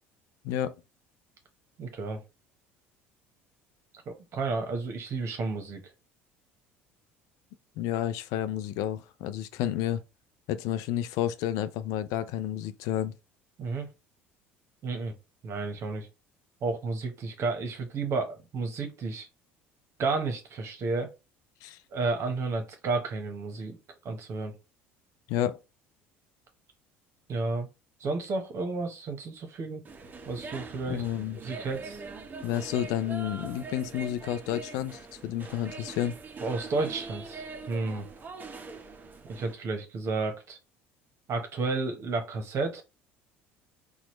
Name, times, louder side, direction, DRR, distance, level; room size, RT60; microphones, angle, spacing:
voice 1, 0.4-0.7 7.8-10.0 10.5-13.1 21.6-21.8 25.3-25.6 30.9-31.4 32.4-36.1, left 11 dB, 65° left, 0.4 m, -30 dB
voice 2, 1.8-2.2 4.1-5.8 13.6-13.9 14.8-15.1 15.4-16.1 16.6-19.3 20.0-21.1 21.9-23.8 24.0-24.5 27.3-27.7 28.0-29.8 30.3-31.0 31.4-32.0 36.4-38.1 39.3-40.6 41.3-42.8, right 3 dB, 50° right, 1.0 m, -32 dB
sound 1, 29.8-39.5, right 4 dB, 30° right, 0.8 m, -43 dB
4.2 x 2.4 x 3.1 m
hypercardioid pair, 70°, 6 cm